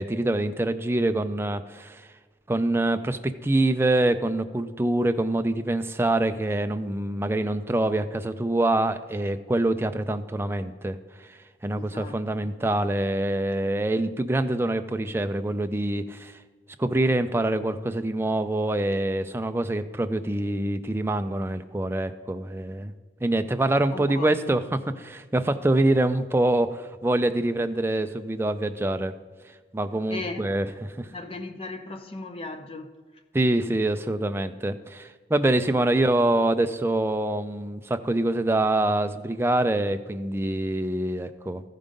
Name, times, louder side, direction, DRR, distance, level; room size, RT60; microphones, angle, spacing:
voice 1, 0.0-2.0 2.5-11.0 11.3-11.4 11.6-16.4 16.8-22.9 23.2-29.1 29.7-31.1 33.3-41.6, right 1 dB, 15° right, 0.4 m, -25 dB
voice 2, 11.7-12.5 23.9-24.6 30.1-30.5 31.0-32.9, left 3 dB, 30° left, 0.7 m, -37 dB
14.0 x 5.3 x 5.1 m
head